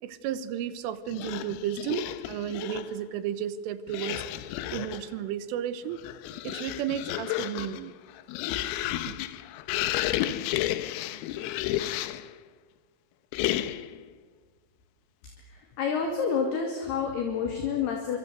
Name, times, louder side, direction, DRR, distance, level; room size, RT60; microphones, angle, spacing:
voice 1, 0.0-6.0 6.5-7.9 9.1-9.2, right 10 dB, 80° right, 13 dB, 3.6 m, -33 dB
sound 1, 1.1-3.0 3.9-5.1 5.8-12.3 13.3-14.0, left 14 dB, 85° left, 3.6 m, -32 dB
voice 2, 15.5-18.2, left 6 dB, 55° left, 2 dB, 4.1 m, -29 dB
26.0 x 24.5 x 8.1 m, 1.4 s
omnidirectional pair, 5.8 m